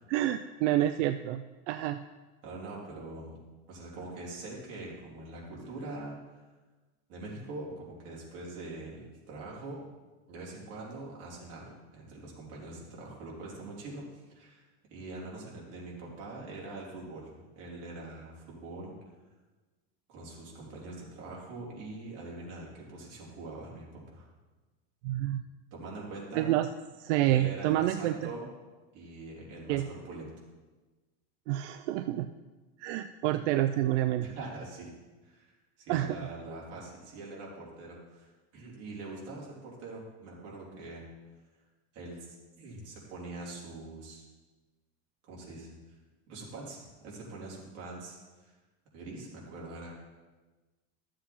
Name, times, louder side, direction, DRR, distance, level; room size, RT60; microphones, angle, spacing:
voice 1, 0.1-2.0 25.0-25.4 26.4-26.7 27.0-28.2 29.7-29.8 31.5-32.3 32.8-34.3 35.9-36.2, right 13 dB, 80° right, 9 dB, 0.5 m, -28 dB
voice 2, 2.4-3.3 3.7-6.4 7.1-9.8 10.3-18.9 20.1-24.3 25.7-26.5 27.3-28.5 28.9-30.3 34.2-34.9 35.2-35.5 35.8-41.1 41.9-44.2 45.3-45.7 46.3-48.5 48.9-49.9, right 2 dB, 45° right, -4 dB, 3.5 m, -43 dB
12.5 x 7.6 x 4.4 m, 1.2 s
supercardioid pair, 155°, 35 cm